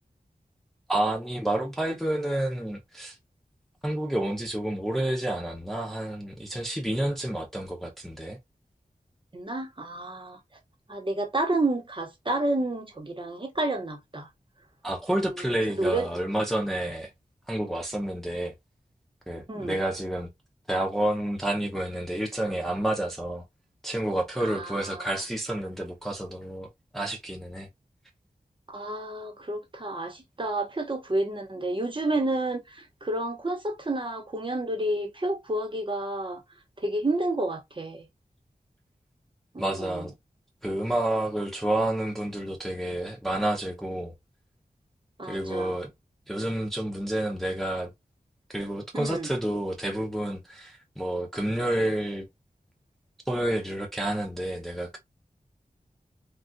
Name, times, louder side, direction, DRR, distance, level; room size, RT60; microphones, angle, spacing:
voice 1, 0.9-3.2 3.8-8.4 14.8-17.1 17.5-18.5 19.3-20.3 20.7-23.4 23.8-27.7 39.6-40.1 40.6-44.1 45.3-45.9 46.3-47.9 48.5-52.3 53.3-55.0, right 1 dB, ahead, 0.6 m, -29 dB
voice 2, 9.3-10.4 10.9-14.3 15.8-16.1 19.5-19.8 24.4-25.0 28.7-36.4 36.8-38.0 39.5-40.1 45.2-45.7 48.9-49.3, right 2 dB, 35° right, 1.0 m, -30 dB
3.7 x 2.4 x 2.3 m
wide cardioid pair, 70°, 15 cm